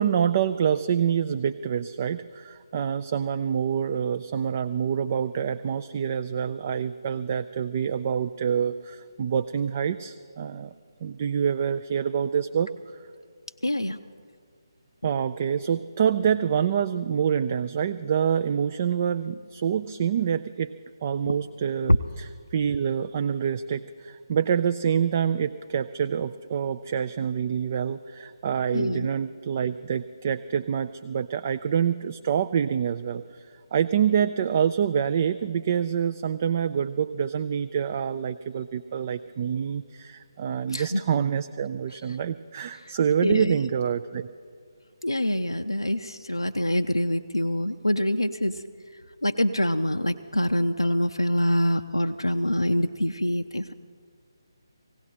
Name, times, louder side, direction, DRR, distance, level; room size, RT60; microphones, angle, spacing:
voice 1, 0.0-10.7 11.0-12.7 15.0-20.7 21.0-44.3, right 8 dB, 30° right, 10 dB, 0.3 m, -26 dB
voice 2, 13.6-14.0 21.9-22.0 28.7-29.1 40.7-41.0 42.8-42.9 43.2-43.5 45.0-48.6 49.2-53.7, left 1 dB, 90° left, 6 dB, 0.5 m, -25 dB
18.0 x 16.5 x 4.3 m, 2.1 s
figure-of-eight pair, 150°, 2 cm